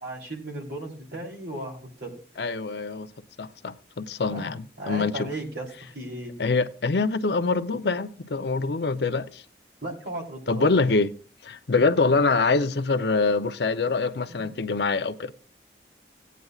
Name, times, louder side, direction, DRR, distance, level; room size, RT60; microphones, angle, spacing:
voice 1, 0.0-2.2 4.3-6.3 9.8-10.7 14.3-14.6, right 1 dB, 75° right, 3.1 m, -36 dB
voice 2, 2.4-3.1 3.4-5.3 6.4-9.4 10.5-11.1 11.4-15.3, left 3 dB, 70° left, 0.6 m, -25 dB
17.0 x 9.2 x 2.4 m
head